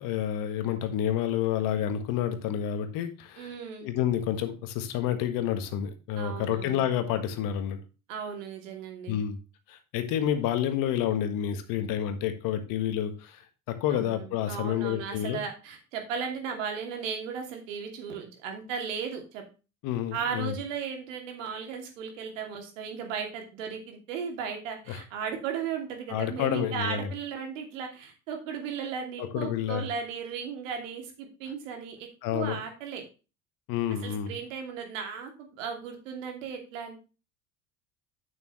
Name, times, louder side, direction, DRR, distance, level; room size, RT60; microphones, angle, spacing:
voice 1, 0.0-3.5 3.8-7.8 9.1-9.4 9.7-13.4 13.7-15.4 19.8-20.5 24.9-25.0 26.1-27.1 29.2-29.9 32.2-32.6 33.7-34.3, left 10 dB, 55° left, 9 dB, 1.5 m, -29 dB
voice 2, 3.4-3.9 6.2-6.8 8.1-9.1 13.9-19.4 20.1-33.0 34.0-35.3 35.6-37.0, right 6 dB, 70° right, 4 dB, 2.7 m, -36 dB
8.7 x 7.1 x 3.1 m, 0.32 s
hypercardioid pair, 75°, 40 cm